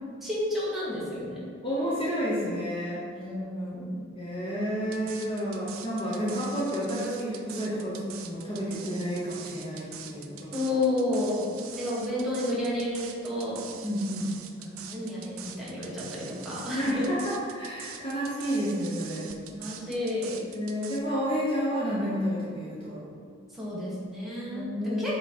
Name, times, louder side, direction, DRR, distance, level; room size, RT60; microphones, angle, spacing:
voice 1, 0.2-1.4 3.1-4.0 10.5-13.6 14.6-17.0 19.5-20.5 23.5-25.2, left 1 dB, ahead, -8 dB, 1.4 m, -31 dB
voice 2, 1.6-3.0 4.2-10.5 13.8-14.3 16.7-19.3 20.5-23.1 24.4-25.2, equal, 25° left, -8 dB, 0.9 m, -30 dB
sound 1, 4.9-21.0, right 9 dB, 80° right, 0.5 m, -44 dB
8.1 x 3.1 x 4.2 m, 2.2 s
head